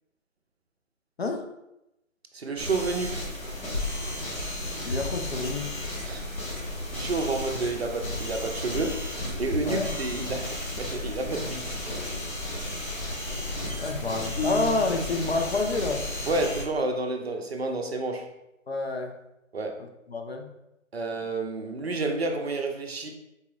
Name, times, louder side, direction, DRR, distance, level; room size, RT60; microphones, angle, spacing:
voice 1, 2.3-3.3 6.0-6.2 6.9-9.0 9.4-11.8 16.3-18.3 19.5-19.8 20.9-23.1, right 3 dB, 50° right, 3 dB, 0.4 m, -30 dB
sound 1, 2.6-16.6, left 1 dB, 80° left, 1.4 m, -33 dB
voice 2, 4.8-5.7 9.6-10.0 13.8-16.0 18.7-19.1 19.8-20.5, left 3 dB, 50° left, 4 dB, 0.5 m, -29 dB
sound 2, 14.4-15.4, left 2 dB, 30° left, 1.2 m, -33 dB
4.1 x 2.7 x 2.4 m, 0.88 s
figure-of-eight pair, 155°, 40 cm